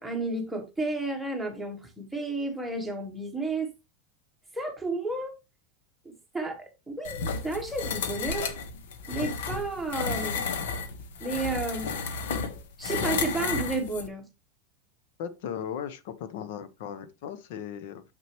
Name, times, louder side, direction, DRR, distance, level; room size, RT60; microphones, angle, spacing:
voice 1, 0.0-3.7 4.5-5.3 6.0-8.5 9.1-10.4 11.2-12.0 12.8-14.2, right 2 dB, ahead, 1.1 m, -32 dB
sound 1, 7.0-14.1, left 5 dB, 85° left, 1.2 m, -32 dB
voice 2, 15.2-18.0, left 8 dB, 55° left, 0.8 m, -37 dB
6.8 x 6.3 x 3.0 m
supercardioid pair, 175°, 0 cm